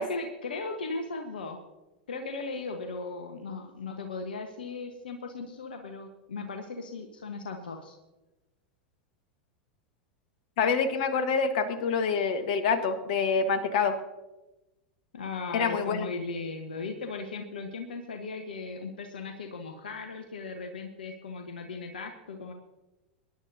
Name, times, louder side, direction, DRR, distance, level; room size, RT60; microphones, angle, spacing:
voice 1, 0.0-1.6 2.1-8.0 15.1-22.5, left 3 dB, 70° left, 5 dB, 1.2 m, -37 dB
voice 2, 10.6-14.0 15.5-16.1, left 5 dB, 55° left, 8 dB, 1.4 m, -26 dB
23.5 x 10.5 x 2.7 m, 1.0 s
figure-of-eight pair, 90°, 5 cm